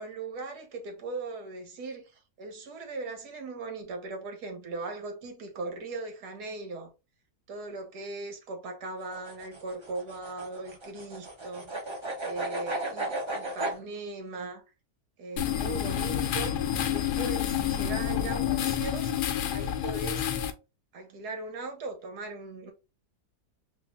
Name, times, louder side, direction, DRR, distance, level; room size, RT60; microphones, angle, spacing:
voice 1, 0.0-6.9 7.5-11.7 12.2-14.6 15.2-19.1 19.5-20.3 20.9-22.7, right 3 dB, 75° right, 1.6 m, -39 dB
sound 1, 9.0-13.8, right 2 dB, 30° right, 0.6 m, -35 dB
sound 2, 15.4-20.5, left 10 dB, 85° left, 1.2 m, -29 dB
3.4 x 2.4 x 3.5 m
omnidirectional pair, 1.7 m